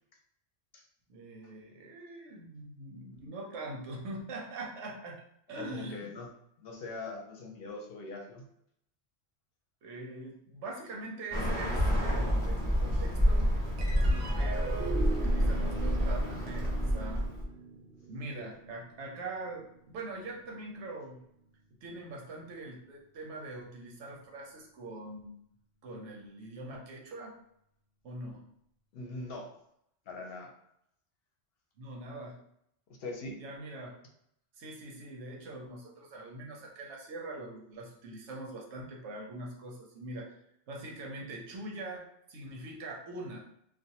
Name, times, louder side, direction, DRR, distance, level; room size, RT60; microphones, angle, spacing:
voice 1, 1.1-5.2 5.5-6.1 9.8-13.5 13.9-17.2 18.0-21.2 21.8-25.4 25.8-27.3 28.0-28.5 31.8-32.4 33.4-34.0 34.6-40.4 40.7-43.4, right 2 dB, 85° right, -1 dB, 1.0 m, -43 dB
voice 2, 5.6-6.3 6.6-8.4 28.9-29.5 30.1-30.5 33.0-33.4, left 3 dB, 65° left, 1 dB, 0.7 m, -41 dB
Bird, 11.3-17.4, equal, 10° left, 0.5 m, -28 dB
sound 1, 13.8-20.5, right 5 dB, 65° right, 0.7 m, -41 dB
2.4 x 2.1 x 2.7 m, 0.74 s
omnidirectional pair, 1.2 m